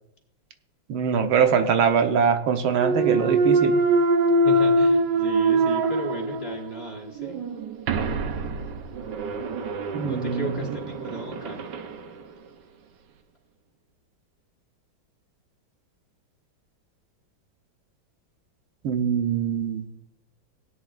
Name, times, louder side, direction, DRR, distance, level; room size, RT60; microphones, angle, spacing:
voice 1, 0.9-3.8 9.9-10.7 18.8-19.9, right 6 dB, 85° right, 6 dB, 1.8 m, -23 dB
Thump thud, 2.7-6.7 7.2-11.9, right 2 dB, 65° right, 1.3 m, -23 dB
voice 2, 4.4-7.4 10.0-11.7, right 1 dB, 35° left, 0 dB, 1.5 m, -35 dB
17.0 x 9.5 x 2.5 m, 0.83 s
omnidirectional pair, 2.2 m